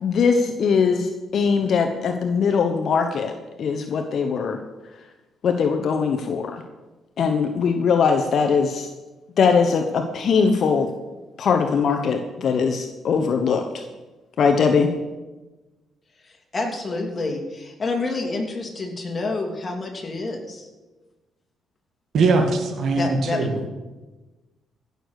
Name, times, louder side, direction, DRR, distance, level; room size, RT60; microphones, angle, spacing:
voice 1, 0.0-3.3 3.6-4.6 5.4-6.6 7.2-8.9 9.4-10.9 11.4-13.8 14.4-14.9, left 5 dB, 60° left, 5 dB, 1.0 m, -21 dB
voice 2, 16.2-20.7 22.9-23.7, left 3 dB, 30° left, 1 dB, 2.9 m, -28 dB
voice 3, 22.1-23.6, right 3 dB, 65° right, 5 dB, 2.1 m, -21 dB
16.0 x 6.8 x 6.5 m, 1.2 s
cardioid pair, 90°, 0 cm